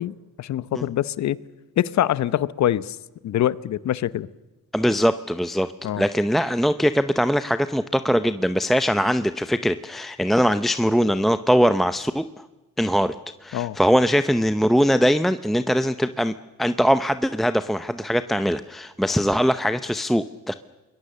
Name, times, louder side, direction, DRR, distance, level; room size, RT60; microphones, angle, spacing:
voice 1, 0.0-1.4 1.8-3.0 3.2-4.3 5.8-6.0 13.5-13.8, left 12 dB, 65° left, 0.9 m, -24 dB
voice 2, 4.7-12.2 12.8-13.1 13.4-16.3 16.6-20.5, equal, ahead, 0.7 m, -21 dB
26.5 x 21.5 x 6.8 m
cardioid pair, 90°, 30 cm